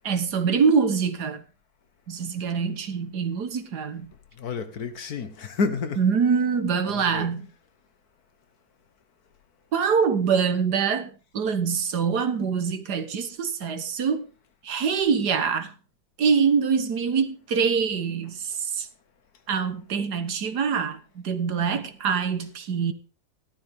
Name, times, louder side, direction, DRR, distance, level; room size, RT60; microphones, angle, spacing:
voice 1, 0.0-1.4 2.1-4.1 6.0-7.5 9.7-14.2 14.6-15.7 16.2-18.9 19.5-22.9, right 6 dB, 70° right, 1.8 m, -24 dB
voice 2, 4.4-6.0 6.9-7.3, left 4 dB, 65° left, 1.7 m, -30 dB
15.0 x 12.5 x 3.6 m
omnidirectional pair, 1.8 m